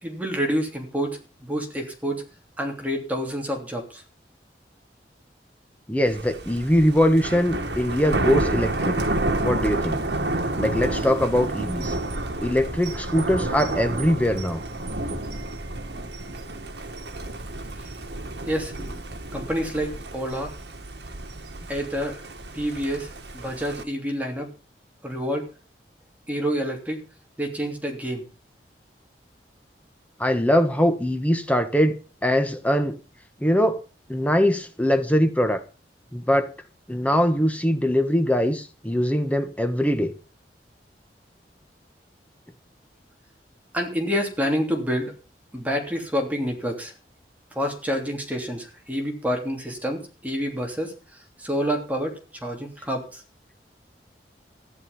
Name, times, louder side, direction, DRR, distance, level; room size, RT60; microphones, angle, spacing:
voice 1, 0.0-2.2 2.6-4.0 18.5-18.7 19.3-20.5 21.7-22.2 22.5-24.5 25.0-25.5 26.3-27.0 27.4-28.3 43.7-45.1 45.5-46.9 47.5-53.2, equal, 10° right, 2 dB, 3.1 m, -28 dB
voice 2, 5.9-9.0 9.4-10.0 10.6-11.9 12.4-14.6 30.2-32.0 32.2-33.0 33.4-33.8 34.1-35.6 36.1-36.5 36.9-40.1, equal, 10° left, 8 dB, 1.3 m, -22 dB
Thunder, 6.1-23.8, right 2 dB, 75° right, 1.9 m, -30 dB
14.5 x 11.0 x 5.5 m, 0.35 s
head